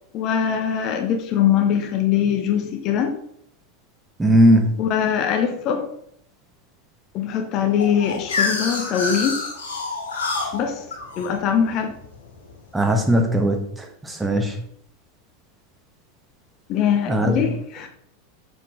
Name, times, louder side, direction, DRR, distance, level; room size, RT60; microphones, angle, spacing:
voice 1, 0.1-3.2 4.8-5.9 7.1-9.4 10.5-10.9 11.2-11.9 16.7-17.9, left 8 dB, 40° left, 6 dB, 0.8 m, -22 dB
voice 2, 4.2-4.7 12.7-14.5 17.1-17.4, equal, 10° right, 3 dB, 1.3 m, -18 dB
sound 1, 7.8-12.6, left 3 dB, 70° left, 2.4 m, -28 dB
6.9 x 5.9 x 3.6 m, 0.70 s
figure-of-eight pair, 85°, 0 cm